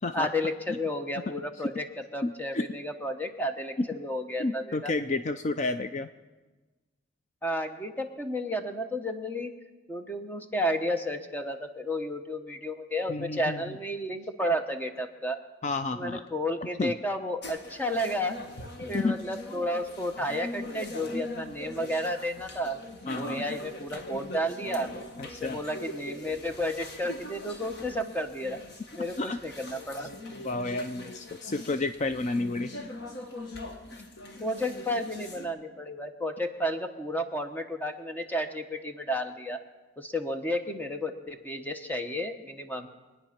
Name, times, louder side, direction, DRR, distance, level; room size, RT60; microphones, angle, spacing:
voice 1, 0.1-1.8 2.1-4.9 7.4-9.5 9.9-15.4 15.9-18.4 18.9-22.8 23.1-24.9 25.2-28.6 29.0-30.1 34.4-39.6 40.0-42.9, equal, 10° left, 6 dB, 1.0 m, -32 dB
voice 2, 2.2-2.6 4.4-6.1 13.1-13.8 15.6-16.2 16.6-16.9 18.9-19.2 23.1-23.4 25.2-25.6 29.2-29.4 30.0-30.1 30.4-32.7, left 3 dB, 35° left, 10 dB, 0.4 m, -31 dB
sound 1, 17.4-35.5, left 1 dB, 60° left, 1.6 m, -42 dB
24.0 x 9.6 x 5.9 m, 1.2 s
head